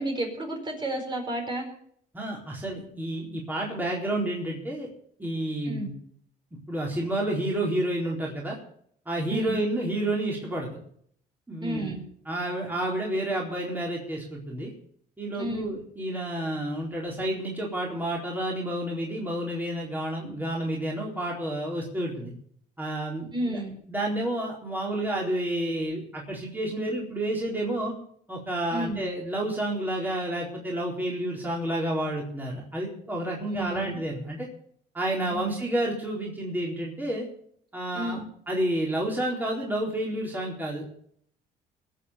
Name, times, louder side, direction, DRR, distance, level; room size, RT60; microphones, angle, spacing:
voice 1, 0.0-1.7 5.6-5.9 9.3-9.6 11.6-12.0 15.4-15.7 23.3-23.7 28.7-29.0 33.4-34.0 35.3-35.4 37.9-38.2, right 1 dB, 25° right, 2 dB, 4.7 m, -31 dB
voice 2, 2.1-4.9 5.2-5.9 6.7-8.6 9.1-10.7 11.5-11.9 12.3-14.7 15.2-22.3 22.8-23.6 23.9-27.9 28.3-34.5 34.9-37.3 37.7-40.9, right 1 dB, 10° right, -3 dB, 4.2 m, -30 dB
20.5 x 7.6 x 7.0 m, 0.64 s
cardioid pair, 110°, 17 cm